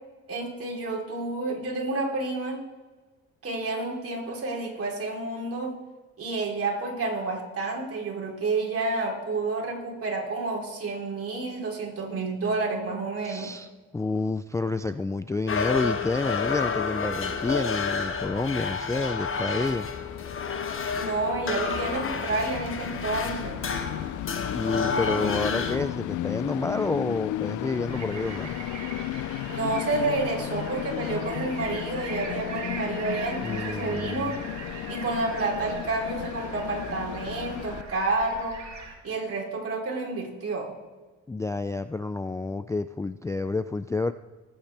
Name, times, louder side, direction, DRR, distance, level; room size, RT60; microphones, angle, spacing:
voice 1, 0.3-2.6 3.4-5.7 6.2-13.5 21.0-23.6 29.5-34.4 34.9-38.6 39.0-40.7, right 3 dB, 50° right, -2 dB, 3.4 m, -30 dB
voice 2, 13.2-19.9 24.5-28.5 33.4-34.3 41.3-44.1, left 3 dB, 10° left, 10 dB, 0.3 m, -29 dB
sound 1, 15.5-25.8, left 5 dB, 45° left, 1.3 m, -30 dB
Train, 19.3-37.8, left 14 dB, 80° left, 0.5 m, -35 dB
sound 2, 27.9-38.9, right 5 dB, 65° right, 3.8 m, -41 dB
19.5 x 8.7 x 3.4 m, 1.3 s
cardioid pair, 90°, 30 cm